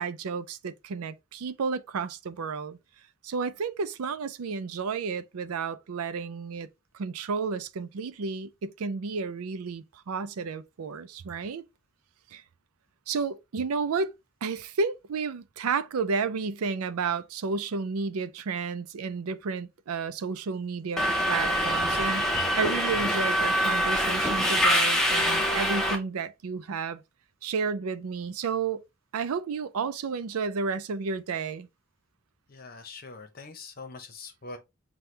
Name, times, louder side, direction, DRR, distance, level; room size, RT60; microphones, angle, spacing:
voice 1, 0.0-2.8 3.2-6.7 6.9-11.6 12.3-12.4 13.1-14.1 14.4-27.0 27.4-28.8 29.1-31.7, right 5 dB, 90° right, 0.5 m, -32 dB
Subway metro underground, 21.0-26.0, equal, ahead, 0.6 m, -25 dB
voice 2, 32.5-34.6, left 3 dB, 40° left, 0.8 m, -43 dB
6.0 x 2.3 x 3.2 m
head